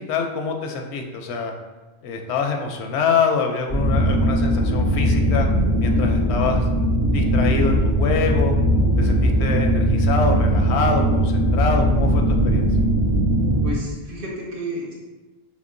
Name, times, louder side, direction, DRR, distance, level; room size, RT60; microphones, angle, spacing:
voice 1, 0.0-1.5 2.0-5.5 5.8-6.6 7.1-8.5 9.0-12.7, left 5 dB, 85° left, 3 dB, 0.8 m, -25 dB
sound 1, 3.7-13.7, equal, 75° right, 1.8 m, -19 dB
voice 2, 13.6-14.9, equal, 60° right, -4 dB, 1.0 m, -31 dB
5.7 x 2.1 x 2.6 m, 1.2 s
omnidirectional pair, 1.1 m